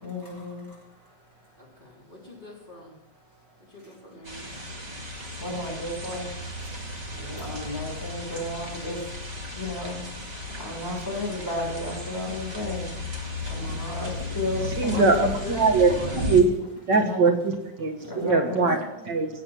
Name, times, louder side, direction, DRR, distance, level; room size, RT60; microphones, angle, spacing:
voice 1, 0.0-0.7 5.4-6.3 7.2-9.0 9.5-10.0 10.6-12.9 13.5-15.3 16.9-17.2 18.0-18.7, left 1 dB, 10° left, -3 dB, 5.1 m, -33 dB
voice 2, 1.6-2.9 3.7-4.5 13.7-14.1 14.9-16.3, left 2 dB, 25° left, -4 dB, 3.8 m, -40 dB
sound 1, 4.2-16.4, left 2 dB, 20° right, 2.0 m, -35 dB
voice 3, 14.8-16.5 16.9-19.3, right 4 dB, 70° right, 4 dB, 2.2 m, -22 dB
16.5 x 7.6 x 6.0 m, 0.89 s
omnidirectional pair, 2.0 m